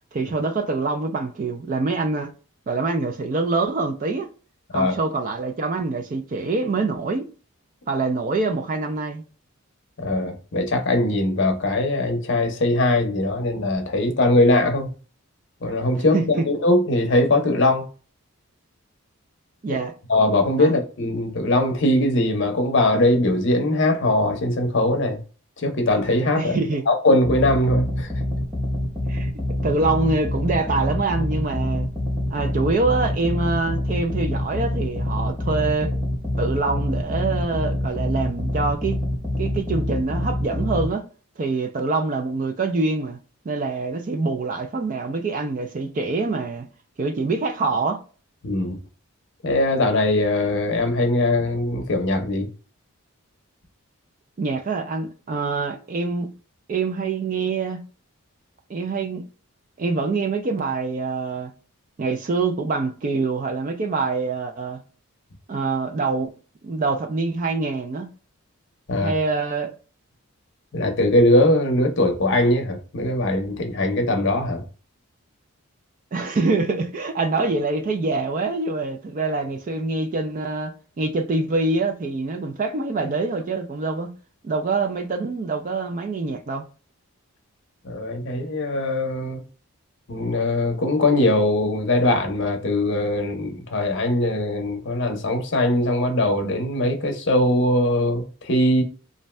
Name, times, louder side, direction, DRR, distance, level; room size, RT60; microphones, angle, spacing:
voice 1, 0.1-2.3 2.7-4.3 4.7-7.3 7.9-9.2 16.1-16.4 19.6-19.9 20.6-20.7 26.3-26.8 29.1-29.3 29.6-31.9 32.3-35.9 36.4-39.0 39.4-41.1 41.4-43.2 43.5-46.7 47.0-48.0 54.4-56.3 56.7-57.8 58.7-59.2 59.8-61.5 62.0-64.8 65.5-66.3 66.6-68.1 68.9-69.7 76.1-84.1 84.4-86.6, right 3 dB, 35° right, 0.3 m, -25 dB
voice 2, 10.0-14.9 15.6-16.2 16.5-17.9 19.7-19.8 20.1-25.2 25.6-26.6 26.9-28.1 48.4-48.8 49.4-52.5 68.9-69.1 70.7-74.6 87.8-89.4 90.1-98.8, left 1 dB, 55° left, 0.6 m, -21 dB
sound 1, 27.2-40.9, left 1 dB, ahead, 0.8 m, -26 dB
2.6 x 2.2 x 3.1 m
head